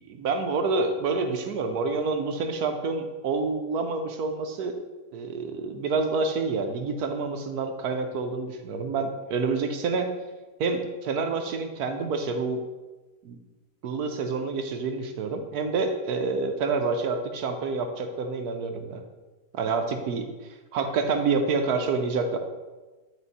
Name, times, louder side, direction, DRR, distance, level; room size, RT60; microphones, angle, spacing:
voice 1, 0.1-4.7 5.1-10.1 10.6-12.6 13.2-13.4 13.8-19.0 19.5-22.4, right 4 dB, 70° right, 5 dB, 1.1 m, -28 dB
9.9 x 4.3 x 4.1 m, 1.2 s
omnidirectional pair, 1.9 m